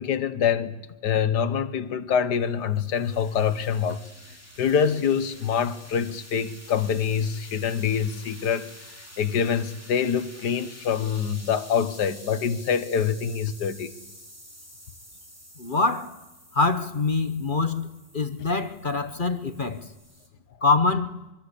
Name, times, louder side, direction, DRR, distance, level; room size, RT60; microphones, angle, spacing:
voice 1, 0.0-4.0 4.6-8.7 9.2-13.9, left 7 dB, 65° left, 1.7 m, -25 dB
sound 1, 2.1-20.3, equal, 10° right, 3.1 m, -48 dB
voice 2, 15.6-16.1 16.5-17.9 18.1-19.8 20.6-21.1, left 3 dB, 35° left, 1.0 m, -24 dB
24.5 x 24.0 x 8.4 m
omnidirectional pair, 2.0 m